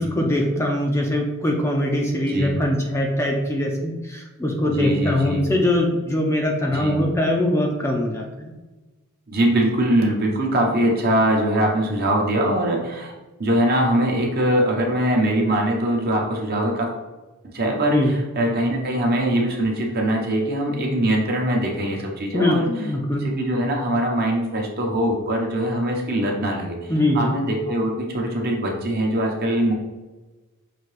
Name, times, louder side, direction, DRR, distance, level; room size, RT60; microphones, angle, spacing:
voice 1, 0.0-8.5 17.9-18.1 22.3-23.2 26.9-27.4, left 1 dB, 10° left, 0 dB, 0.5 m, -22 dB
voice 2, 4.7-5.4 6.7-7.0 9.3-13.1 13.4-16.9 17.5-22.7 23.2-29.7, right 1 dB, 45° right, 0 dB, 1.0 m, -22 dB
5.8 x 2.9 x 3.2 m, 1.2 s
head